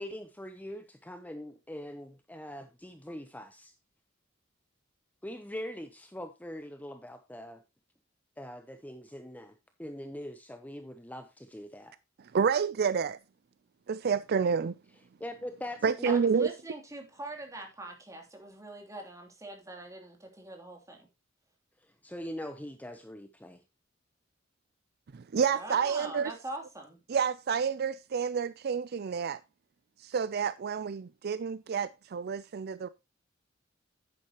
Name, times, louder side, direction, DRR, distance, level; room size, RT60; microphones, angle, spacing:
voice 1, 0.0-3.7 5.2-7.6 8.4-9.5 9.8-11.9 15.2-16.2 22.0-23.6, left 1 dB, 10° left, 0.8 m, -42 dB
voice 2, 12.3-13.2 13.9-14.7 15.8-16.5 25.1-26.3 27.1-29.4 30.0-32.9, right 6 dB, 55° right, 0.4 m, -29 dB
voice 3, 16.0-21.1 25.5-27.0, right 2 dB, 15° right, 3.0 m, -43 dB
10.0 x 9.6 x 2.9 m
head